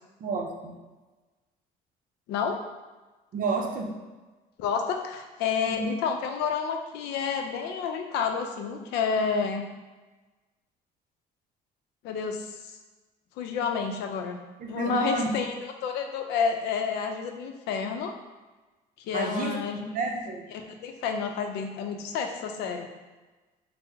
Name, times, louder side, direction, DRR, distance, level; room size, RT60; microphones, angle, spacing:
voice 1, 0.2-0.8 3.3-4.0 5.7-5.9 14.6-15.4 19.1-19.6 19.9-20.5, right 3 dB, 55° right, 2 dB, 0.6 m, -30 dB
voice 2, 2.3-2.6 4.6-9.7 12.0-12.6 13.4-14.4 14.7-18.1 19.0-19.8 20.5-22.9, left 6 dB, 85° left, 5 dB, 0.5 m, -30 dB
4.4 x 2.0 x 3.4 m, 1.2 s
cardioid pair, 110°, 17 cm